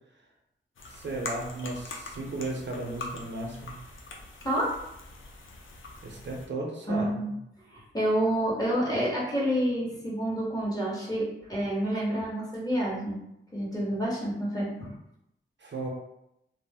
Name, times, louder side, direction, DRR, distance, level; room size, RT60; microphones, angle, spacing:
sound 1, 0.8-6.5, left 2 dB, 80° left, 0.5 m, -43 dB
voice 1, 0.9-3.8 6.0-7.1 15.6-15.9, right 2 dB, 65° right, -1 dB, 0.6 m, -35 dB
voice 2, 4.4-4.7 6.9-7.3 7.7-13.2 13.5-14.9, right 1 dB, 20° left, -5 dB, 1.2 m, -28 dB
2.4 x 2.0 x 3.4 m, 0.82 s
wide cardioid pair, 65°, 20 cm